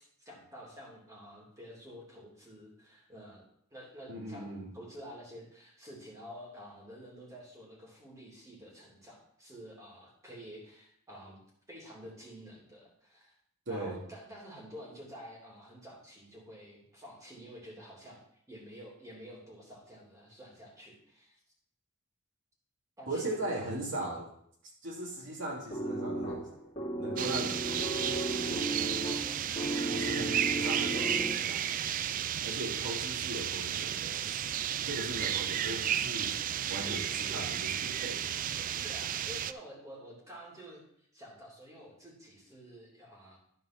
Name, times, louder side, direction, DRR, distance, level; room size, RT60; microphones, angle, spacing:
voice 1, 0.2-11.4 11.7-13.3 13.7-18.2 18.5-21.4 23.0-23.7 36.8-37.6 38.8-43.4, equal, 15° right, -4 dB, 2.8 m, -49 dB
voice 2, 4.1-4.7 13.7-14.0 23.1-24.3 24.8-26.5 27.0-29.0 29.9-31.9 32.4-34.3 34.8-36.4 36.7-38.3 38.5-38.6, right 1 dB, 60° right, -3 dB, 2.8 m, -39 dB
sound 1, 25.7-31.7, right 1 dB, 25° left, 2.5 m, -35 dB
sound 2, 27.2-39.5, right 10 dB, 40° right, 0.3 m, -33 dB
11.0 x 4.6 x 6.0 m, 0.68 s
head